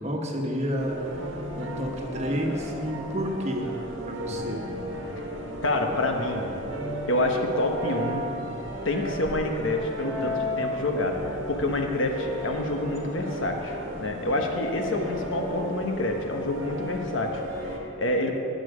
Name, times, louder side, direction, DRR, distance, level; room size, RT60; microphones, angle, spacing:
voice 1, 0.0-3.7 4.0-4.7, equal, 30° right, 0 dB, 1.3 m, -30 dB
sound 1, 0.8-17.8, equal, 65° right, 1.6 m, -35 dB
voice 2, 5.6-6.5 7.1-8.3 8.8-18.4, left 2 dB, 65° left, 3 dB, 1.2 m, -28 dB
19.0 x 6.6 x 5.0 m, 2.8 s
head